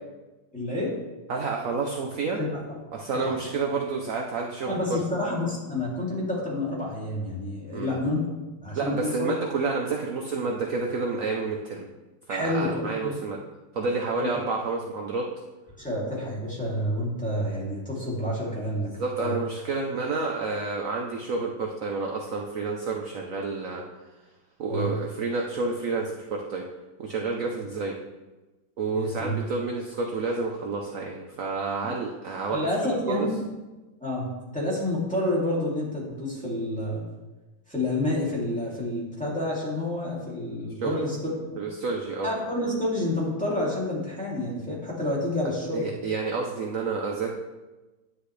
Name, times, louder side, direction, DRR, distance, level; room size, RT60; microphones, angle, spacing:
voice 1, 0.5-0.9 2.4-2.8 3.1-3.3 4.7-8.2 8.6-9.3 12.3-13.2 14.2-14.3 15.8-18.9 19.2-19.3 24.7-24.9 28.9-29.4 32.5-33.4 34.0-37.0 37.7-41.6 42.2-45.9, left 1 dB, 5° left, -7 dB, 2.6 m, -29 dB
voice 2, 1.3-2.4 2.9-4.8 7.7-8.0 8.8-11.9 12.3-13.4 13.7-15.3 19.0-23.8 24.6-26.7 27.0-27.9 28.8-32.6 32.8-33.3 40.8-41.0 41.6-42.3 45.7-47.3, right 4 dB, 60° right, 0 dB, 0.8 m, -29 dB
10.0 x 9.9 x 3.3 m, 1.1 s
omnidirectional pair, 2.4 m